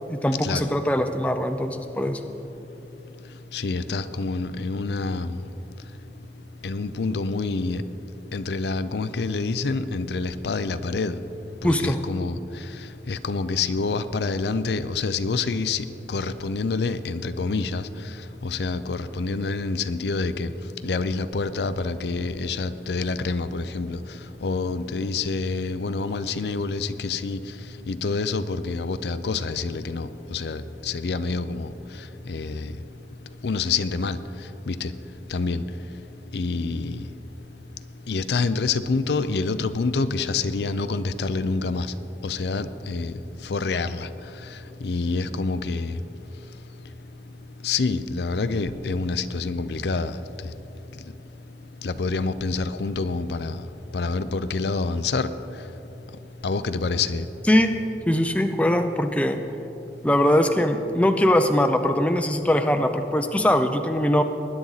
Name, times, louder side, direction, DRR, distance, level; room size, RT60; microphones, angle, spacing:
voice 1, 0.1-2.2 11.6-12.0 57.5-57.7 58.1-59.4 60.0-64.2, left 1 dB, 10° left, 6 dB, 0.5 m, -21 dB
voice 2, 3.5-5.4 6.6-7.8 8.3-11.2 11.6-12.4 13.1-17.8 18.4-20.5 20.8-24.0 24.4-27.4 27.9-31.7 32.3-32.7 33.4-34.2 34.7-34.9 35.3-35.6 36.3-37.0 38.1-41.9 42.2-43.1 43.5-44.1 44.8-46.0 47.6-50.1 51.8-53.6 53.9-55.3 56.4-57.2, left 4 dB, 75° left, 12 dB, 0.5 m, -27 dB
20.0 x 10.0 x 4.0 m, 2.9 s
head